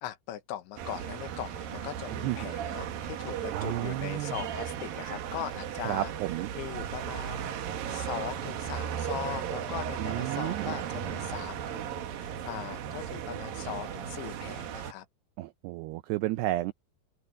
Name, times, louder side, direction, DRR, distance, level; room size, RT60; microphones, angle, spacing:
voice 1, 0.0-6.1 6.5-15.1, left 12 dB, 75° left, 3.5 m, -40 dB
sound 1, 0.8-14.9, right 9 dB, 60° right, 2.7 m, -36 dB
voice 2, 2.1-2.5 3.5-4.3 5.8-6.5 10.0-10.8 15.4-16.7, right 16 dB, 85° right, 2.3 m, -32 dB
open air
omnidirectional pair, 5.5 m